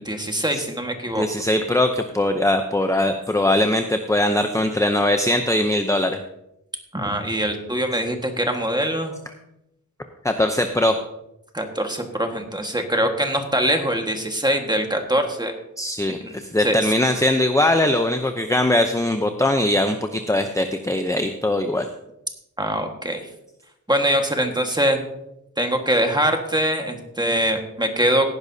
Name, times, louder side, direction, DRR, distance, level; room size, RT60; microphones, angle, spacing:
voice 1, 0.0-1.3 6.9-9.1 11.5-15.5 16.2-16.8 22.6-23.3 23.9-25.0 25.6-28.3, right 1 dB, 15° right, 4 dB, 1.6 m, -23 dB
voice 2, 1.2-6.2 10.2-10.9 15.8-21.9, left 1 dB, 10° left, 6 dB, 0.7 m, -21 dB
17.0 x 10.5 x 2.8 m, 0.85 s
wide cardioid pair, 85°, 32 cm